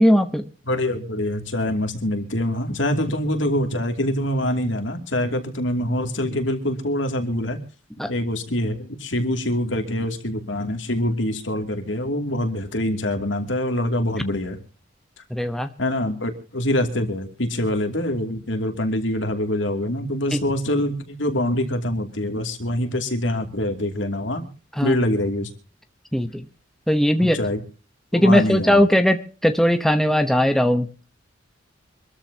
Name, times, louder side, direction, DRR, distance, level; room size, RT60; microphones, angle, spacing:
voice 1, 0.0-0.5 8.0-8.1 15.3-15.7 20.3-20.4 24.8-24.9 26.1-26.4 26.9-27.4 28.1-31.0, equal, ahead, 7 dB, 1.0 m, -19 dB
voice 2, 0.7-7.6 8.1-14.6 15.8-24.4 24.8-25.5 27.2-27.6 28.1-28.8, left 1 dB, 70° left, 5 dB, 2.6 m, -25 dB
25.5 x 13.5 x 2.9 m, 0.36 s
head